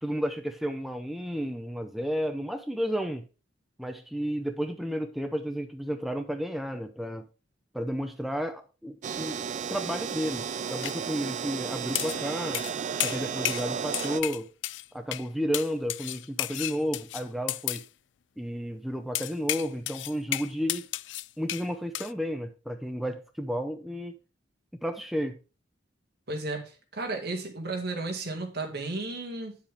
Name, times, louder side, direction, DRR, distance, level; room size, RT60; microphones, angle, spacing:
voice 1, 0.0-3.2 3.8-7.2 7.7-9.4 9.7-12.6 13.0-14.5 14.9-17.8 18.4-20.9 21.4-24.2 24.7-25.4, equal, ahead, 0.6 m, -32 dB
sound 1, 9.0-14.2, right 7 dB, 40° right, 0.4 m, -33 dB
sound 2, 10.8-11.0 12.0-12.2 12.5-12.7 13.0-13.7 13.9-14.9 15.1-15.3 15.5-17.9 19.1-21.7 21.9-22.1, left 15 dB, 70° left, 0.3 m, -32 dB
voice 2, 26.3-29.6, right 2 dB, 60° right, 2.2 m, -34 dB
9.3 x 7.3 x 3.5 m
head